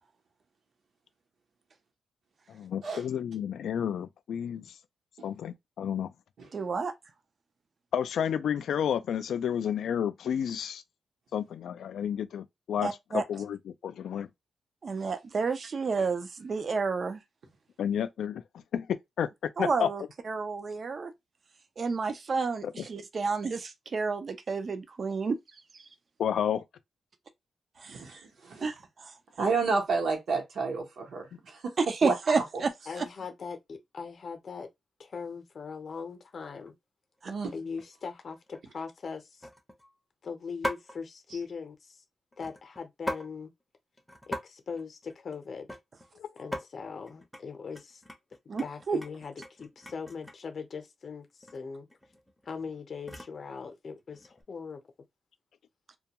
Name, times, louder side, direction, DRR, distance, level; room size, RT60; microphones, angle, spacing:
voice 1, 2.5-4.8 5.2-6.1 7.9-10.8 11.3-14.3 17.8-18.4 18.7-19.3 19.6-19.9 22.6-22.7 26.2-26.6 46.2-46.3, left 9 dB, 80° left, 0.3 m, -31 dB
voice 2, 6.5-6.9 12.8-13.2 14.8-17.2 19.6-21.1 21.8-25.4 27.8-28.0 28.6-28.7 31.8-32.7 32.9-33.0 37.2-37.3 48.5-49.0, right 4 dB, 40° right, 0.4 m, -30 dB
voice 3, 27.9-28.7 29.4-33.0 37.2-37.5 41.3-41.4, right 4 dB, 70° right, 0.9 m, -31 dB
voice 4, 32.9-34.7 35.0-36.8 37.5-39.5 40.2-42.0 42.4-43.5 44.3-45.7 46.4-48.0 48.6-51.9 52.5-54.8, left 5 dB, 45° left, 0.6 m, -40 dB
sound 1, 36.4-36.7 37.2-37.5 37.8-37.9 38.2-38.6 39.4-39.9 40.6-41.0 42.3-43.3 43.6-43.7 44.0-44.4 44.7-46.1 46.4-46.6 47.1-47.4 47.7-50.5 51.4-51.6 51.9-53.4 54.1-54.4, equal, ahead, 0.6 m, -40 dB
2.2 x 2.2 x 2.8 m
wide cardioid pair, 135°, 0 cm